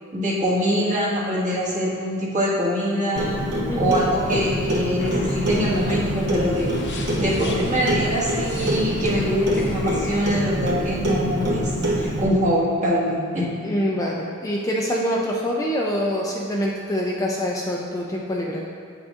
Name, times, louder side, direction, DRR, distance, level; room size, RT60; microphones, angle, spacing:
voice 1, 0.1-3.4 3.8-11.7 12.0-13.5, equal, 35° right, -7 dB, 1.5 m, -24 dB
Clock, 3.2-12.2, equal, 50° right, 0.9 m, -25 dB
sound 1, 5.0-10.2, left 2 dB, 55° left, 0.7 m, -37 dB
voice 2, 13.6-18.7, equal, 15° left, -3 dB, 0.4 m, -25 dB
8.9 x 6.1 x 2.5 m, 2.1 s
head